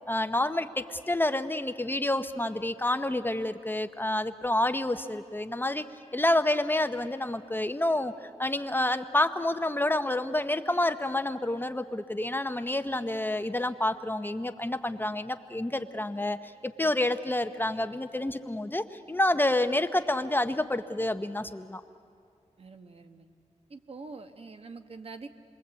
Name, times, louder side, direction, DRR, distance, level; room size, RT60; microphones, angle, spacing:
voice 1, 0.0-5.8 6.1-21.8, left 1 dB, 15° left, 9 dB, 0.8 m, -28 dB
voice 2, 22.6-23.3 23.7-25.3, right 4 dB, 55° right, 7 dB, 1.3 m, -45 dB
28.5 x 22.0 x 8.2 m, 2.4 s
wide cardioid pair, 105°, 12 cm